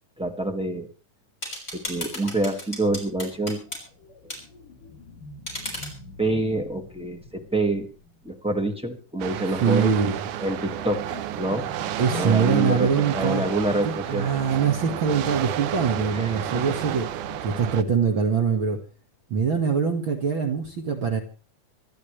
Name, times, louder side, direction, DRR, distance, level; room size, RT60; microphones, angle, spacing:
voice 1, 0.2-0.9 1.7-3.6 4.2-4.3 6.2-7.9 8.2-9.9 10.4-11.1 11.4-11.7 12.1-14.3 16.1-16.8, right 2 dB, 5° right, 3 dB, 0.9 m, -27 dB
sound 1, 1.4-3.8 4.3-4.4 5.5-5.9, left 1 dB, 20° left, 6.4 m, -34 dB
sound 2, 3.3-8.5 9.4-18.7, left 3 dB, 75° left, 4.6 m, -44 dB
sound 3, 9.2-17.8, right 12 dB, 80° right, 2.4 m, -31 dB
voice 2, 9.6-10.2 12.0-13.4 13.8-17.1 17.4-18.8 19.3-21.2, right 6 dB, 45° right, 4 dB, 2.1 m, -23 dB
26.0 x 12.0 x 3.3 m, 0.35 s
omnidirectional pair, 3.7 m